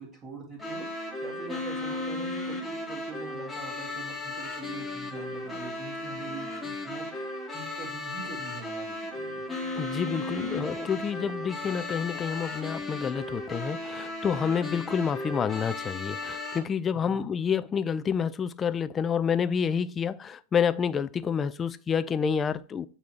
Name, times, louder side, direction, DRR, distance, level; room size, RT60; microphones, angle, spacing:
voice 1, 0.0-9.4 17.0-17.3, right 3 dB, 20° right, 2.0 m, -44 dB
sound 1, 0.6-16.6, left 2 dB, 5° left, 1.4 m, -35 dB
voice 2, 9.8-22.9, left 7 dB, 20° left, 0.3 m, -28 dB
8.2 x 2.8 x 4.6 m
figure-of-eight pair, 90°, 0 cm